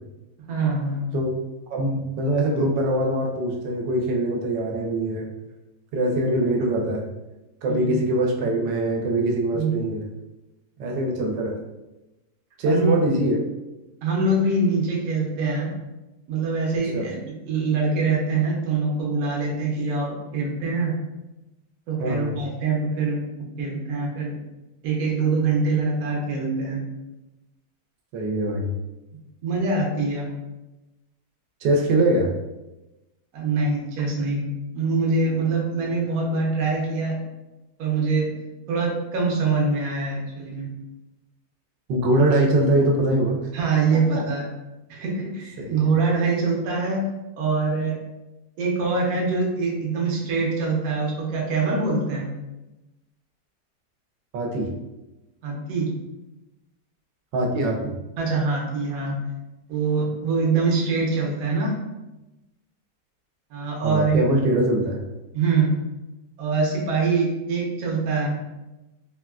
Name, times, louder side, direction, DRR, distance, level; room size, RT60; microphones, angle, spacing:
voice 1, 0.5-1.1 7.7-8.0 9.5-9.8 12.7-12.9 14.0-15.8 16.3-17.2 17.5-21.0 21.9-24.3 24.8-26.8 29.4-30.3 33.3-34.4 34.7-37.2 37.8-38.3 38.7-40.7 43.5-44.5 44.9-47.1 47.4-48.0 48.6-52.3 55.4-55.9 58.2-59.2 59.7-61.8 63.5-64.2 65.3-65.7 66.4-68.4, right 3 dB, 60° right, -2 dB, 1.1 m, -24 dB
voice 2, 1.7-5.3 5.9-7.0 7.6-10.1 10.8-11.6 12.6-13.4 16.9-17.0 22.0-22.4 28.1-28.7 31.6-32.3 41.9-43.4 45.6-45.7 54.3-54.7 57.3-57.9 63.8-65.0, right 1 dB, 85° right, 1 dB, 1.3 m, -22 dB
3.6 x 2.2 x 2.2 m, 1.0 s
omnidirectional pair, 1.9 m